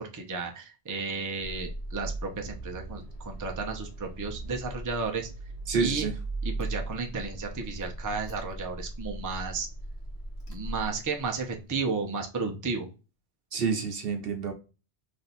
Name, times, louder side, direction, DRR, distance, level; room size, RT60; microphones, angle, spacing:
voice 1, 0.0-5.3 5.8-6.1 6.4-9.7 10.5-12.9, right 4 dB, 25° right, 0.5 m, -33 dB
Car / Engine starting, 1.4-11.5, right 2 dB, 70° left, 1.2 m, -38 dB
voice 2, 5.7-6.1 13.5-14.5, right 5 dB, 60° right, 0.9 m, -28 dB
3.3 x 2.7 x 4.1 m
omnidirectional pair, 1.1 m